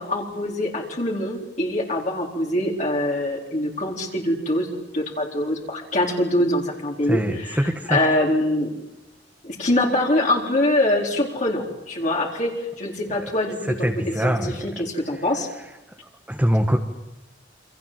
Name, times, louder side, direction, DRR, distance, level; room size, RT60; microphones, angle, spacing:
voice 1, 0.0-4.7 4.9-8.7 9.4-13.9 14.2-15.5, left 1 dB, 40° left, -1 dB, 4.2 m, -24 dB
voice 2, 7.0-8.0 13.6-14.7 16.3-16.8, equal, 10° right, 3 dB, 1.8 m, -23 dB
28.5 x 26.0 x 7.7 m, 0.94 s
head